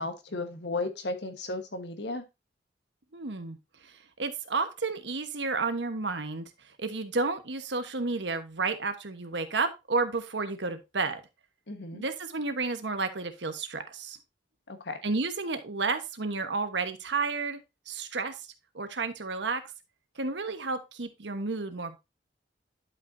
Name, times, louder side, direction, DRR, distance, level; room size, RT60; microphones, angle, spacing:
voice 1, 0.0-2.2 11.7-12.0 14.7-15.0, left 2 dB, 75° left, 7 dB, 1.3 m, -34 dB
voice 2, 3.1-3.6 3.8-6.5 6.8-11.2 11.9-14.2 15.0-17.6 17.9-18.5 18.7-19.6 20.2-22.0, right 3 dB, 80° right, 8 dB, 1.2 m, -31 dB
11.5 x 5.5 x 2.7 m, 0.24 s
head